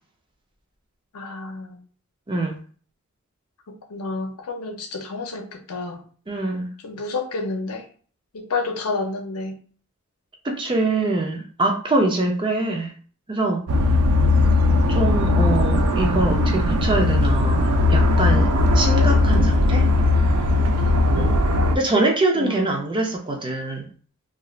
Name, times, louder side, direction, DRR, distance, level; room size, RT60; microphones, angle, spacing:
voice 1, 1.1-1.8 3.7-6.0 6.8-7.9 8.3-9.6 22.3-22.8, left 3 dB, 85° left, 0.6 m, -30 dB
voice 2, 2.3-2.6 6.3-6.7 10.4-12.9 13.3-13.6 14.9-19.9 21.1-21.4 21.7-23.8, right 2 dB, 20° right, 0.5 m, -24 dB
sound 1, 13.7-21.8, left 2 dB, 75° right, 0.4 m, -18 dB
3.1 x 2.5 x 2.4 m
head